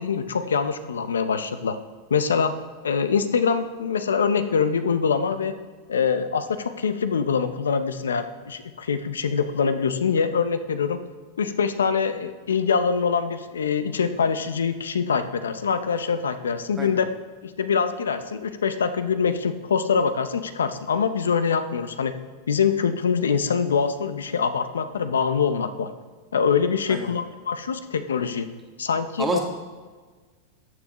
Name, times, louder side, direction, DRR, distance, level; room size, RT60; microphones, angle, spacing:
voice 1, 0.0-1.8 2.1-2.5 2.8-5.6 5.9-11.0 11.4-17.1 17.4-22.1 22.5-25.9 26.3-28.5 28.8-29.4, left 6 dB, 90° left, 10 dB, 0.6 m, -24 dB
voice 2, 16.8-17.0 26.9-27.1 29.2-29.4, right 4 dB, 15° right, 1 dB, 1.7 m, -28 dB
13.5 x 7.2 x 3.0 m, 1.4 s
hypercardioid pair, 105°, 0 cm